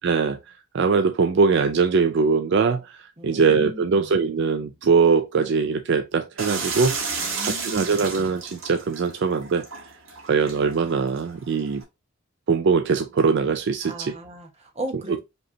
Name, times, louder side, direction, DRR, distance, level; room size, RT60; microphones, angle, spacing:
voice 1, 0.0-0.4 0.7-7.1 7.4-9.7 10.2-11.8 12.5-14.1, right 5 dB, 55° right, 0.4 m, -22 dB
voice 2, 3.2-4.2 7.2-8.1 13.8-15.2, right 1 dB, 30° right, 1.1 m, -36 dB
sound 1, 6.4-11.8, right 4 dB, 75° right, 1.4 m, -33 dB
5.1 x 3.1 x 2.7 m
head